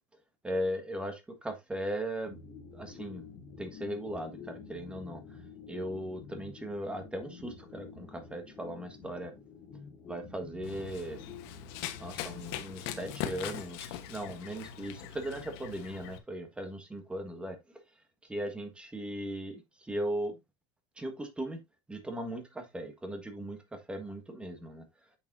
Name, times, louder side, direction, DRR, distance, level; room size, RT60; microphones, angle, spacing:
voice 1, 0.4-2.4 2.7-3.3 3.6-5.2 5.7-9.3 10.1-11.2 12.0-17.6 18.3-20.3 21.0-21.6 21.9-24.8, right 1 dB, 10° right, 1.6 m, -38 dB
sound 1, 2.3-14.1, left 6 dB, 30° left, 1.9 m, -49 dB
Run, 10.6-16.2, left 11 dB, 70° left, 1.2 m, -41 dB
8.3 x 6.3 x 2.7 m
supercardioid pair, 145°, 13 cm